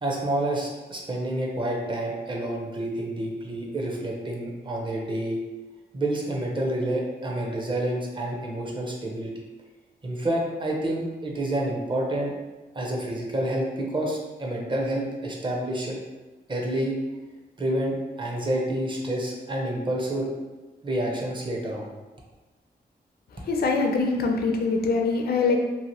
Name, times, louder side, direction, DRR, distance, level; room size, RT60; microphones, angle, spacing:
voice 1, 0.0-5.4 5.9-9.3 10.0-12.3 12.7-16.0 16.5-17.0 17.6-20.3 20.8-21.9, right 1 dB, 30° right, -1 dB, 0.6 m, -28 dB
voice 2, 23.4-25.6, left 4 dB, 65° left, 2 dB, 0.4 m, -23 dB
2.7 x 2.5 x 2.9 m, 1.2 s
wide cardioid pair, 120°, 17 cm